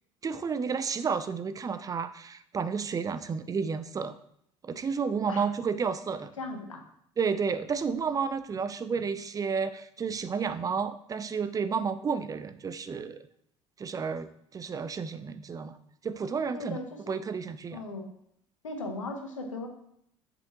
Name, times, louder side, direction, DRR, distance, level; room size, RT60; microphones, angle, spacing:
voice 1, 0.2-4.2 4.6-6.3 7.2-13.3 13.8-15.8 16.0-16.8 17.1-17.8, right 5 dB, 20° right, 11 dB, 0.5 m, -31 dB
voice 2, 6.4-6.8 16.5-17.1 17.7-18.1 18.6-19.7, left 2 dB, 80° left, 3 dB, 1.0 m, -37 dB
7.0 x 5.3 x 2.9 m, 0.71 s
figure-of-eight pair, 60°, 16 cm